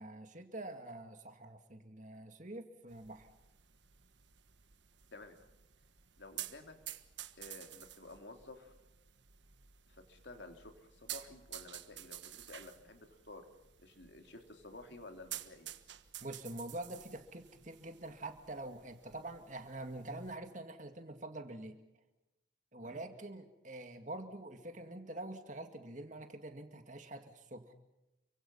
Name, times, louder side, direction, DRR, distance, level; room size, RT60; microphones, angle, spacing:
voice 1, 0.0-3.3 16.2-21.8 22.7-27.7, right 2 dB, 40° right, 6 dB, 2.1 m, -46 dB
sound 1, 2.9-20.3, right 13 dB, 65° right, 1.4 m, -51 dB
voice 2, 6.2-6.8 7.4-8.7 9.9-13.4 13.8-15.7 22.8-23.0, left 2 dB, 60° left, 5 dB, 3.4 m, -52 dB
29.5 x 24.5 x 5.6 m, 0.96 s
head